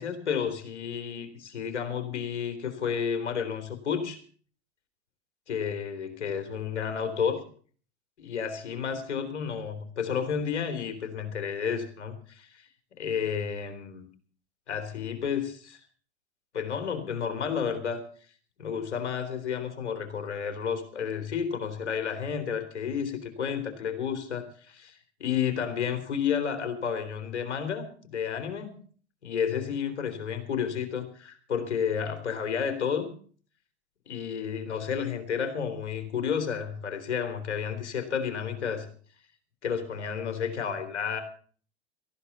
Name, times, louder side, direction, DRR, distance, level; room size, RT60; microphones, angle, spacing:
voice 1, 0.0-4.2 5.5-7.4 8.2-12.6 13.0-14.1 14.7-15.8 16.5-18.0 18.6-28.8 29.2-33.1 34.1-38.9 39.6-41.2, left 7 dB, 75° left, 8 dB, 3.3 m, -31 dB
18.0 x 14.5 x 4.2 m, 0.44 s
figure-of-eight pair, 85°, 34 cm